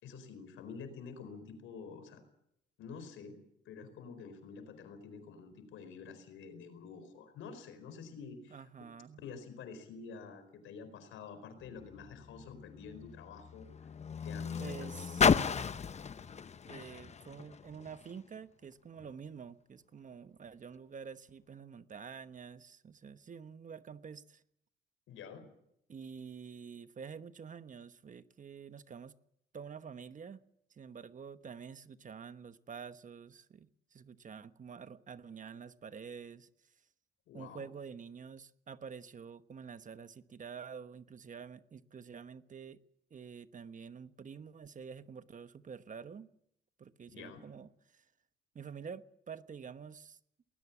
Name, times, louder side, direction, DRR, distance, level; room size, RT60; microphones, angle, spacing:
voice 1, 0.0-2.2 2.8-8.6 9.2-13.7 14.2-14.9 25.1-25.5 37.3-37.7 47.1-47.4, left 5 dB, 85° left, 4.6 m, -48 dB
voice 2, 8.5-9.2 14.6-15.7 16.7-24.4 25.9-29.1 29.5-30.4 30.7-36.5 37.3-42.8 43.1-46.3 46.8-48.0 48.5-50.2, right 6 dB, 40° right, 1.1 m, -48 dB
Car, 11.6-18.2 19.0-19.1, left 6 dB, 35° left, 0.8 m, -34 dB
20.0 x 19.5 x 7.3 m
cardioid pair, 90°, 20 cm